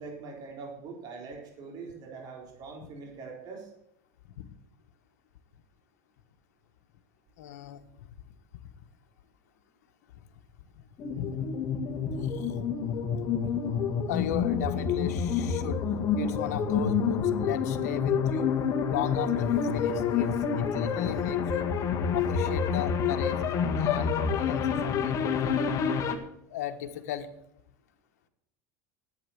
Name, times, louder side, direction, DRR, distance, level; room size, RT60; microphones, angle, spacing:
voice 1, 0.0-3.7, right 4 dB, 50° right, 1 dB, 4.1 m, -43 dB
voice 2, 7.4-7.8 11.2-11.3 12.2-12.6 14.0-15.9 16.1-18.5 18.9-21.7 22.1-23.4 23.8-25.8 26.5-27.3, left 11 dB, 85° left, 8 dB, 1.3 m, -37 dB
sound 1, 11.0-26.2, left 6 dB, 40° left, 1.7 m, -28 dB
10.5 x 9.3 x 7.7 m, 0.76 s
supercardioid pair, 110°, 9 cm